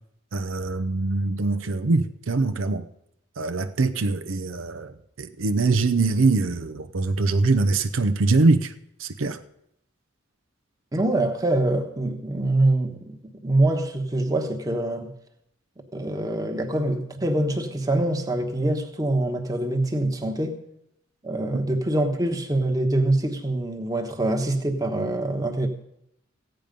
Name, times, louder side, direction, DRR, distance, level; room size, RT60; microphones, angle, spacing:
voice 1, 0.3-2.8 3.4-8.7 9.0-9.4, right 3 dB, 80° right, 0.7 m, -23 dB
voice 2, 10.9-15.1 15.9-20.6 21.2-25.7, right 1 dB, 20° right, 1.2 m, -24 dB
15.5 x 9.1 x 5.2 m
head